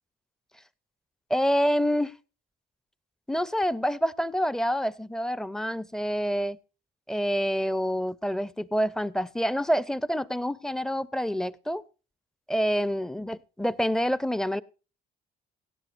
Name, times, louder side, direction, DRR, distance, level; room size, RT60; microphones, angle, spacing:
voice 1, 1.3-2.1 3.3-6.6 7.1-11.8 12.5-14.6, equal, 5° left, 0.5 m, -27 dB
17.5 x 12.0 x 2.5 m
cardioid pair, 110°, 17 cm